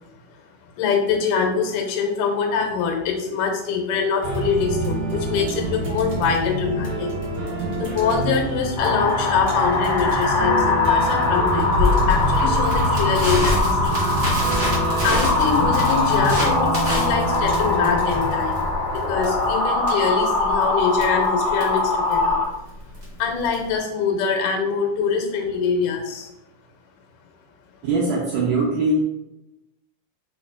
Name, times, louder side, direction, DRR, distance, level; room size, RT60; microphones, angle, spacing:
voice 1, 0.8-7.1 7.8-14.0 15.0-22.4 23.2-26.3, left 5 dB, 80° left, 2 dB, 2.3 m, -24 dB
sound 1, 4.2-19.5, right 1 dB, 60° right, 1.2 m, -27 dB
sound 2, 8.8-22.5, left 3 dB, 55° left, 1.8 m, -22 dB
Crackle, 11.8-23.7, left 2 dB, 40° right, 1.1 m, -28 dB
voice 2, 27.8-29.0, right 2 dB, 75° right, -5 dB, 1.6 m, -21 dB
4.6 x 4.4 x 2.4 m, 0.91 s
omnidirectional pair, 3.8 m